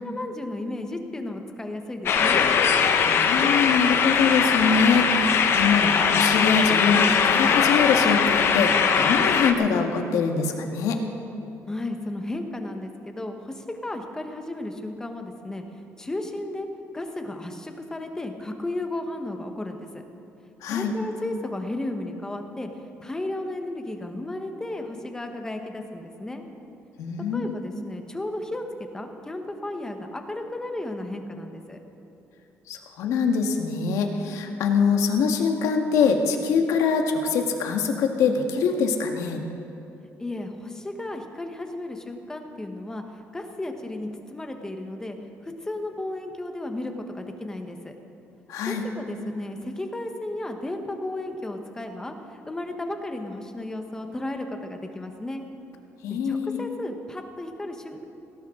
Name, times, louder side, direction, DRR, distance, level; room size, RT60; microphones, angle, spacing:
voice 1, 0.0-2.4 11.7-15.6 16.0-16.7 16.9-20.0 20.7-22.7 23.0-26.4 27.3-28.6 28.9-31.8 40.2-45.2 45.4-47.9 48.7-55.5 56.2-58.0, left 1 dB, 10° left, 5 dB, 1.2 m, -34 dB
sound 1, 2.1-9.5, left 6 dB, 50° left, 0.9 m, -21 dB
voice 2, 3.0-11.0 20.6-20.9 27.0-27.6 32.7-39.4 48.5-48.8 56.0-56.6, left 5 dB, 90° left, 4 dB, 1.6 m, -24 dB
18.0 x 17.5 x 3.8 m, 3.0 s
cardioid pair, 155°, 5 cm